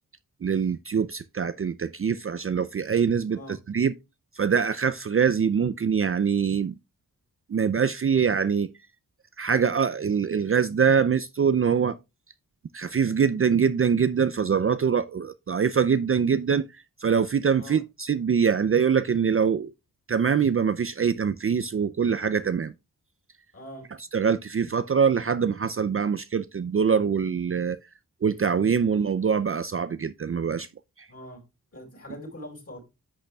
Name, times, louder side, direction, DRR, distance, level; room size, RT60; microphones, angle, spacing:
voice 1, 0.4-3.9 4.4-6.7 7.5-8.7 9.4-12.0 12.7-16.7 17.0-19.7 20.1-22.7 24.1-27.8 28.2-30.7, right 6 dB, 40° right, 0.5 m, -24 dB
voice 2, 23.5-23.9 31.1-31.4 31.7-32.8, equal, 40° left, 5.0 m, -42 dB
10.0 x 6.5 x 2.3 m
cardioid pair, 40°, 36 cm